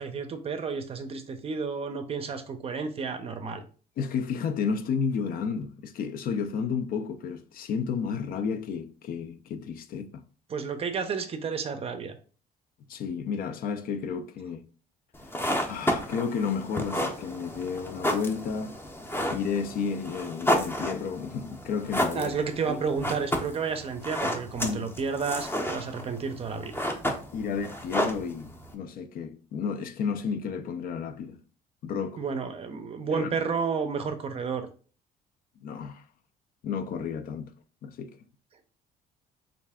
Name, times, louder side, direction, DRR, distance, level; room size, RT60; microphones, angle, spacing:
voice 1, 0.0-3.6 10.5-12.2 22.1-26.8 32.2-34.7, right 5 dB, 35° right, 0.5 m, -31 dB
voice 2, 4.0-10.2 12.9-14.6 15.7-18.8 19.3-22.3 22.7-22.8 24.6-24.9 27.3-31.4 31.8-32.2 33.1-33.3 35.6-36.0 36.6-37.5 37.8-38.2, left 6 dB, 60° left, 0.4 m, -32 dB
sound 1, 15.1-28.7, equal, 15° left, 0.6 m, -32 dB
3.2 x 2.4 x 3.5 m
cardioid pair, 110°, 17 cm